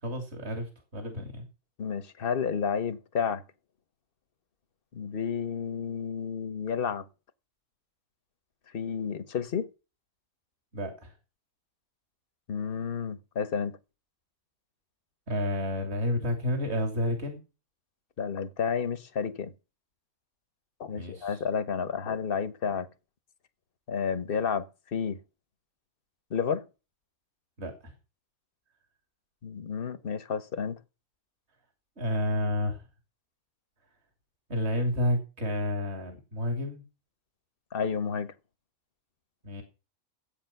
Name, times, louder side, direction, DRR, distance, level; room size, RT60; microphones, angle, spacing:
voice 1, 0.0-1.5 10.7-11.1 15.3-17.4 20.9-21.4 27.6-27.9 32.0-32.8 34.5-36.8 39.4-39.6, left 1 dB, 45° right, 3.3 m, -30 dB
voice 2, 1.8-3.4 4.9-7.0 8.7-9.7 12.5-13.8 18.2-19.5 20.8-22.9 23.9-25.2 26.3-26.6 29.4-30.8 37.7-38.3, left 6 dB, 45° left, 1.2 m, -31 dB
14.0 x 8.8 x 5.9 m
omnidirectional pair, 1.5 m